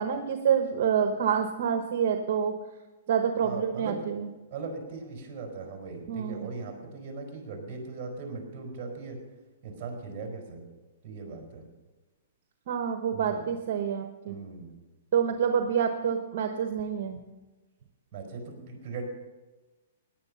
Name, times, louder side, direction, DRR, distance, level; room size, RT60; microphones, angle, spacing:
voice 1, 0.0-2.5 3.1-4.2 6.1-6.5 12.7-14.4 15.1-17.2, right 7 dB, 50° right, 6 dB, 1.1 m, -27 dB
voice 2, 3.4-4.0 4.5-9.2 9.6-10.6 11.0-11.6 13.1-13.4 14.3-14.7 18.1-19.0, right 4 dB, 25° right, 1 dB, 4.9 m, -39 dB
17.5 x 10.0 x 5.6 m, 1.2 s
hypercardioid pair, 165°, 0 cm